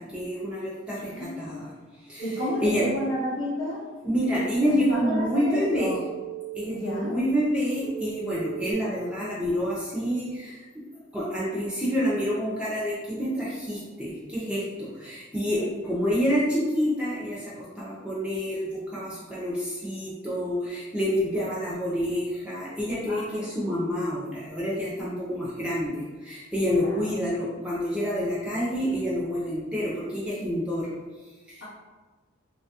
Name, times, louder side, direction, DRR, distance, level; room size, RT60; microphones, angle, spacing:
voice 1, 0.0-1.7 2.1-2.8 4.0-6.0 6.6-10.5 11.1-30.9 31.5-31.6, equal, 5° right, -7 dB, 0.4 m, -28 dB
voice 2, 1.1-1.6 2.2-3.8 4.3-6.0 6.7-7.2 23.1-23.5 26.6-27.0, left 1 dB, 75° left, -8 dB, 0.7 m, -32 dB
Telephone, 2.2-2.7 5.6-6.6 7.9-8.7, right 13 dB, 60° right, 0.5 m, -37 dB
2.7 x 2.2 x 2.7 m, 1.3 s
head